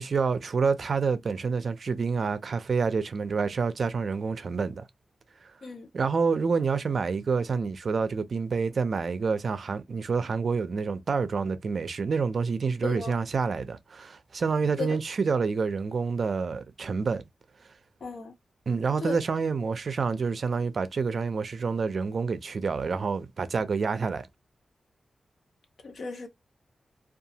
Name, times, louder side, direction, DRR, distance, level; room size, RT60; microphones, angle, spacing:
voice 1, 0.0-4.8 5.9-17.2 18.7-24.2, right 5 dB, 55° right, 0.4 m, -28 dB
voice 2, 12.8-13.2 14.8-15.0 18.0-18.3 19.0-19.2 25.8-26.3, left 3 dB, 70° left, 0.7 m, -35 dB
2.7 x 2.3 x 2.7 m
wide cardioid pair, 120°, 0 cm